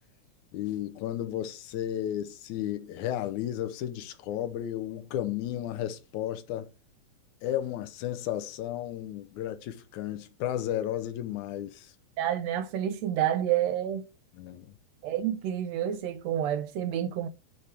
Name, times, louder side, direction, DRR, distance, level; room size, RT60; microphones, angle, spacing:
voice 1, 0.5-6.7 7.4-11.9 14.4-14.7, left 12 dB, 90° left, 2.2 m, -33 dB
voice 2, 12.2-14.1 15.0-17.3, right 11 dB, 80° right, 1.6 m, -29 dB
9.5 x 3.4 x 4.3 m
omnidirectional pair, 3.3 m